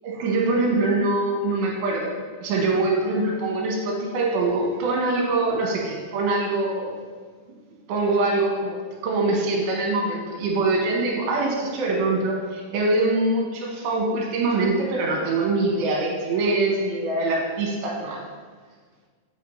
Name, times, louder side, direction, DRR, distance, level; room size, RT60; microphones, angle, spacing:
voice 1, 0.0-6.9 7.9-18.2, right 2 dB, 75° right, -2 dB, 2.8 m, -24 dB
8.4 x 5.8 x 2.8 m, 1.5 s
omnidirectional pair, 4.9 m